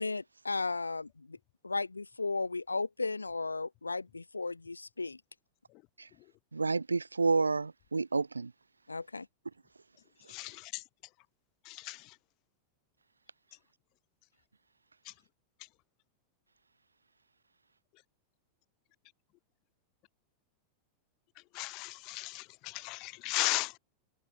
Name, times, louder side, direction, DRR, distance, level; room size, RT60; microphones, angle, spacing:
voice 1, 0.0-1.4 1.6-5.2 8.9-9.3, left 3 dB, 80° left, 2.8 m, -35 dB
voice 2, 6.5-8.5, right 4 dB, 80° right, 0.8 m, -29 dB
voice 3, 10.3-10.6 11.7-12.0 21.5-23.8, left 25 dB, 40° left, 1.0 m, -35 dB
figure-of-eight pair, 90°, 0 cm